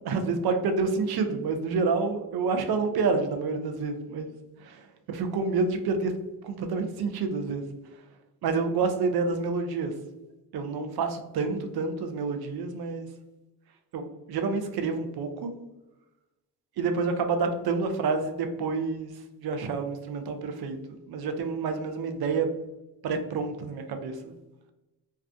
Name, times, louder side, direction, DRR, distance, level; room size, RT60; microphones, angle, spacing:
voice 1, 0.0-4.3 4.6-6.1 6.4-7.6 8.4-9.9 10.5-13.1 13.9-15.5 16.8-22.5 23.0-24.3, right 4 dB, 55° right, 6 dB, 0.5 m, -28 dB
2.3 x 2.2 x 2.5 m, 1.0 s
supercardioid pair, 45°, 47 cm